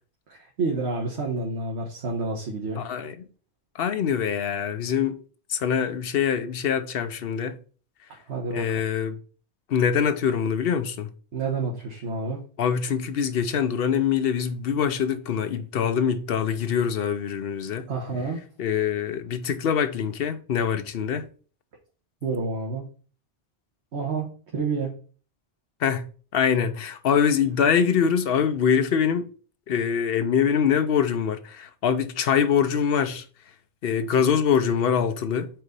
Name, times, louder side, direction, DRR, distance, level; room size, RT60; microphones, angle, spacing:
voice 1, 0.3-2.8 8.1-8.8 11.3-12.4 17.9-18.4 22.2-22.9 23.9-25.0, right 3 dB, 70° right, 1.4 m, -29 dB
voice 2, 2.8-3.3 3.7-5.2 5.5-7.6 8.5-9.2 9.7-11.1 12.6-17.9 18.6-21.3 25.8-26.1 26.3-29.3 29.7-33.2 33.8-35.5, left 7 dB, 60° left, 0.8 m, -24 dB
4.5 x 4.0 x 5.2 m
omnidirectional pair, 1.2 m